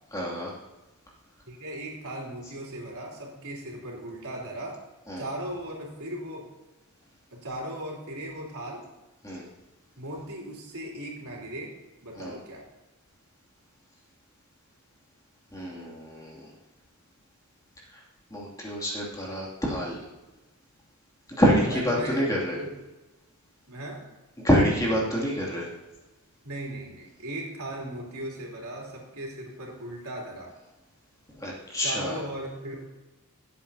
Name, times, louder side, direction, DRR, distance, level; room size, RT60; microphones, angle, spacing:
voice 1, 0.1-0.5 5.1-5.2 9.2-9.4 12.1-12.4 15.5-16.5 17.9-18.0 18.3-20.0 21.4-22.6 24.4-25.7 31.3-32.2, equal, 15° left, -4 dB, 2.5 m, -26 dB
voice 2, 1.5-4.8 5.2-6.5 7.3-8.9 10.0-11.8 12.0-12.7 21.5-22.2 22.5-22.8 23.7-24.0 26.4-30.5 31.8-32.8, right 1 dB, 80° right, -2 dB, 3.3 m, -37 dB
16.0 x 8.5 x 2.8 m, 1.1 s
head